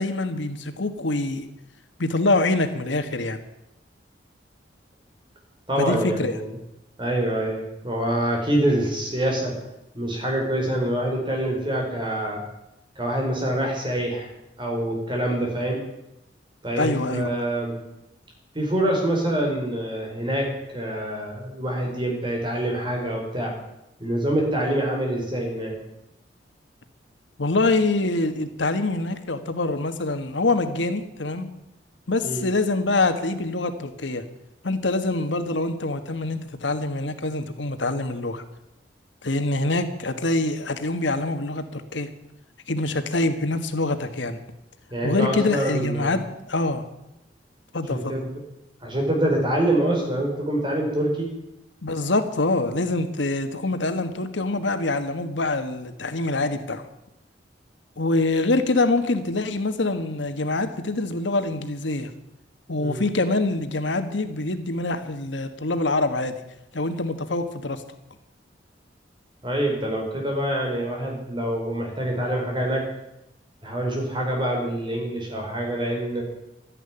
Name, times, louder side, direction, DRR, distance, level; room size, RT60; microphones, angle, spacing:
voice 1, 0.0-1.4 2.0-3.4 5.8-6.3 16.8-17.3 27.4-31.5 32.1-34.2 34.6-38.4 39.2-42.1 42.7-44.4 45.0-46.8 47.7-48.1 51.8-56.8 58.0-62.1 62.7-66.3 66.7-67.8, left 2 dB, 85° left, 9 dB, 1.5 m, -25 dB
voice 2, 5.7-6.5 7.0-9.5 9.9-12.4 13.0-14.3 14.6-15.8 16.6-17.8 18.5-23.5 24.0-25.8 32.2-32.4 44.9-46.2 47.9-48.4 48.8-51.3 62.8-63.0 69.4-72.9 73.6-76.2, right 1 dB, 25° right, 0 dB, 4.8 m, -25 dB
12.5 x 11.0 x 9.9 m, 0.88 s
head